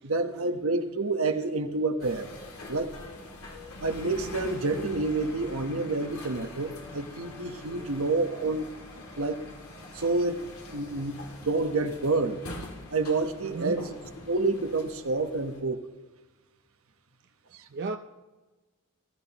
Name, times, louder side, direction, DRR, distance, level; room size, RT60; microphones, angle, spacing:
voice 1, 0.0-2.3 2.7-2.9 3.8-8.7 9.2-9.4 9.9-10.4 10.7-11.1 11.4-12.4 12.9-13.9 14.3-15.8, right 3 dB, 80° right, 1.1 m, -28 dB
sound 1, 2.0-15.6, left 1 dB, 80° left, 2.3 m, -44 dB
voice 2, 13.4-13.9 17.7-18.0, right 4 dB, 55° right, 0.5 m, -35 dB
20.0 x 13.5 x 3.0 m
head